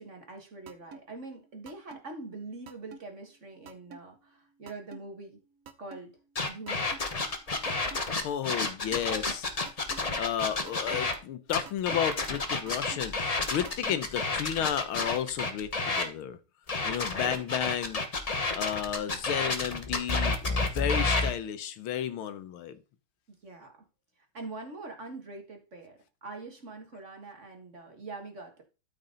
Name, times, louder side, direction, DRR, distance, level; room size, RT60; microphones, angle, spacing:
voice 1, 0.0-5.4 5.8-6.2 6.5-6.9 23.4-23.8 24.2-28.6, right 3 dB, 35° right, 3 dB, 1.9 m, -44 dB
sound 1, 0.7-1.0 1.7-2.0 2.7-3.0 3.7-4.0 4.7-5.0 5.7-6.0 6.7-7.0 7.7-8.0 8.7-9.0 9.7-10.0 10.7-11.0 11.7-12.0 12.7-13.0 13.7-14.0, right 5 dB, 55° right, 1.0 m, -46 dB
sound 2, 6.4-11.1 11.5-16.1 16.7-21.3, left 3 dB, 30° left, 0.7 m, -30 dB
voice 2, 8.2-9.5 10.2-16.4 16.8-18.0 18.5-22.8, left 9 dB, 80° left, 12 dB, 1.7 m, -32 dB
13.0 x 5.4 x 3.9 m, 0.31 s
omnidirectional pair, 2.3 m